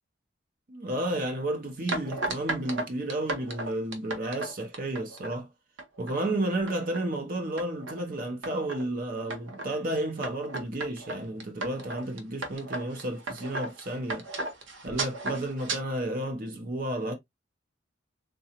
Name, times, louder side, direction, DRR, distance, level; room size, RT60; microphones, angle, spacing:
voice 1, 0.7-5.5 6.0-14.3 14.8-17.1, right 1 dB, 45° right, 0.6 m, -32 dB
sound 1, 1.9-5.3 5.8-6.2 6.5-7.1 7.6-8.0 8.4-8.8 9.3-9.7 10.2-15.8, right 2 dB, 85° right, 0.8 m, -35 dB
3.7 x 2.3 x 2.7 m
head